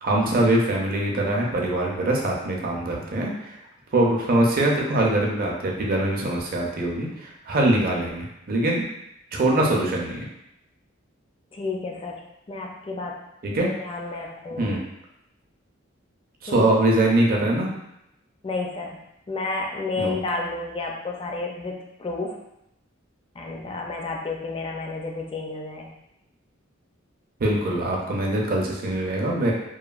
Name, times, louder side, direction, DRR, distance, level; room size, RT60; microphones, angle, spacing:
voice 1, 0.0-3.6 3.9-8.8 9.3-10.3 13.4-13.7 14.6-14.8 16.4-17.7 20.0-20.2 27.4-29.5, right 1 dB, 45° right, -1 dB, 0.5 m, -23 dB
voice 2, 11.5-12.2 12.5-13.2 13.8-14.7 16.5-16.7 18.4-19.0 19.3-22.4 23.4-25.9, left 3 dB, 25° left, 0 dB, 0.4 m, -31 dB
2.9 x 2.2 x 2.4 m, 0.82 s
head